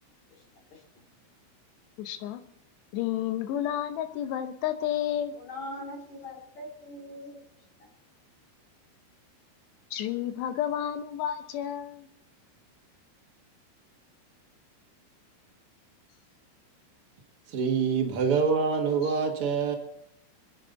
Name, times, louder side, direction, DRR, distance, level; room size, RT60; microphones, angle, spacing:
voice 1, 2.0-2.4 2.9-5.3 9.9-12.1, left 11 dB, 75° left, 9 dB, 2.8 m, -31 dB
voice 2, 5.3-7.4 7.8-7.9, left 1 dB, 45° left, 0 dB, 3.0 m, -41 dB
voice 3, 17.5-19.7, right 5 dB, 85° right, 0 dB, 1.2 m, -25 dB
26.0 x 10.5 x 4.0 m, 0.77 s
omnidirectional pair, 5.5 m